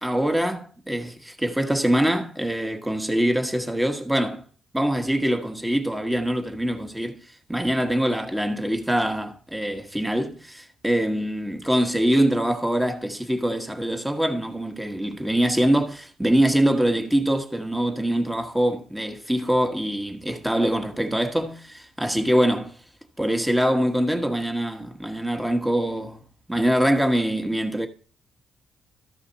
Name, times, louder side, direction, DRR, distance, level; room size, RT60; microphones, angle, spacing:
voice 1, 0.0-4.5 4.7-7.2 7.5-22.8 23.2-26.2 26.5-27.9, right 1 dB, 5° right, 1.2 m, -24 dB
13.5 x 5.0 x 4.0 m
cardioid pair, 90°, 0 cm